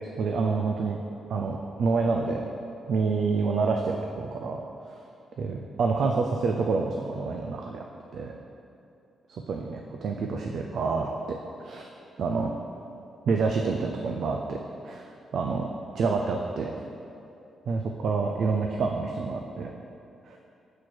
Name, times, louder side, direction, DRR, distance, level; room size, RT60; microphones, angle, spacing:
voice 1, 0.2-1.0 1.3-2.4 2.9-4.6 5.4-7.8 8.1-8.3 9.3-11.9 12.2-12.5 13.3-14.6 14.8-15.7 15.9-16.7 17.7-19.8 20.3-20.4, right 4 dB, 65° right, 2 dB, 0.4 m, -28 dB
6.2 x 4.3 x 4.5 m, 2.7 s
cardioid pair, 130°, 0 cm